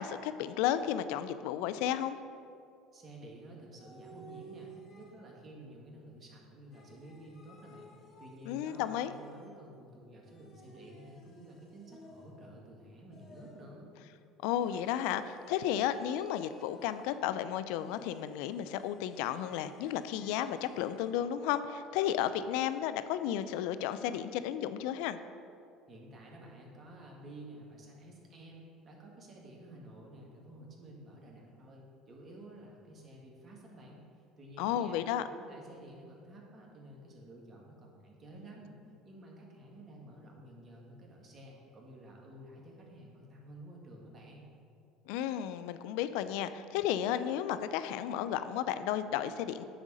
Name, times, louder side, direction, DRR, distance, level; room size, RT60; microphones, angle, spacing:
voice 1, 0.0-2.2 8.5-9.1 14.4-25.2 34.6-35.3 45.1-49.6, left 10 dB, 75° left, 12 dB, 0.4 m, -33 dB
voice 2, 2.9-7.9 8.2-13.9 25.9-34.0 34.4-35.0 35.3-44.5, right 1 dB, 35° right, -2 dB, 2.0 m, -51 dB
sound 1, 3.8-5.5 6.7-9.8 10.2-12.6 13.1-13.8 14.5-17.3 17.7-21.2, right 1 dB, 45° left, 1.3 m, -56 dB
9.2 x 3.7 x 6.2 m, 2.4 s
supercardioid pair, 80°, 0 cm